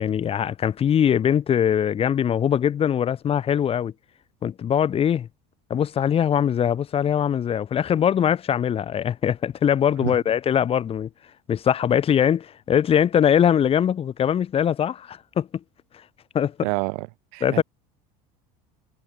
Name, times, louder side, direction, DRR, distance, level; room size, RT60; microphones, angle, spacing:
voice 1, 0.0-3.9 4.4-5.3 5.7-11.1 11.5-15.5 16.3-16.5 17.4-17.6, left 9 dB, 30° left, 1.3 m, -22 dB
voice 2, 16.6-17.1 17.3-17.6, right 32 dB, 80° right, 0.7 m, -27 dB
supercardioid pair, 120°, 18 cm